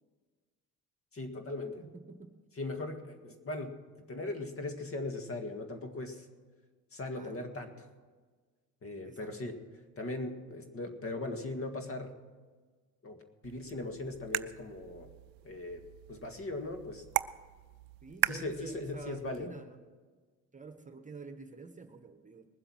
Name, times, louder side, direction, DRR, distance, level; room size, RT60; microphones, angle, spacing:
voice 1, 1.1-1.9 2.6-6.3 6.9-7.9 8.8-9.6 10.0-12.2 13.0-15.1 15.4-17.0 18.2-19.6, left 2 dB, 40° left, 6 dB, 1.9 m, -39 dB
voice 2, 7.1-7.4 9.0-9.3 18.0-19.8 20.5-22.4, right 4 dB, 20° right, 7 dB, 1.3 m, -48 dB
sound 1, 13.4-19.5, right 20 dB, 80° right, 0.5 m, -39 dB
20.0 x 7.8 x 6.3 m, 1.4 s
supercardioid pair, 75°, 34 cm